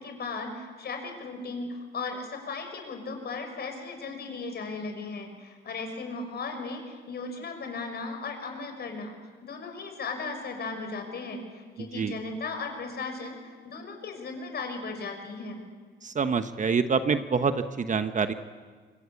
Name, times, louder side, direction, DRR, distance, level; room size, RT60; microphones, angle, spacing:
voice 1, 0.0-9.1 9.4-15.6, left 3 dB, 55° left, 5 dB, 6.0 m, -36 dB
voice 2, 16.0-18.3, right 5 dB, 40° right, 10 dB, 1.1 m, -26 dB
26.0 x 21.5 x 8.5 m, 1.5 s
cardioid pair, 90°, 20 cm